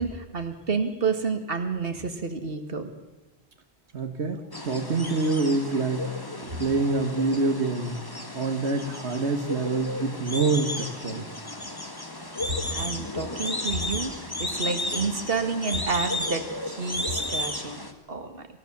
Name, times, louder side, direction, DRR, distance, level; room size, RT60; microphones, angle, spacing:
voice 1, 0.0-2.9 6.5-6.6 12.7-17.8 18.1-18.5, right 4 dB, 60° right, 6 dB, 2.1 m, -29 dB
voice 2, 3.9-6.1 6.6-8.0 8.3-11.3, right 3 dB, 80° right, 5 dB, 1.7 m, -26 dB
sound 1, 4.5-17.9, left 1 dB, 20° left, 1.8 m, -33 dB
27.0 x 15.0 x 7.2 m, 1.1 s
omnidirectional pair, 1.1 m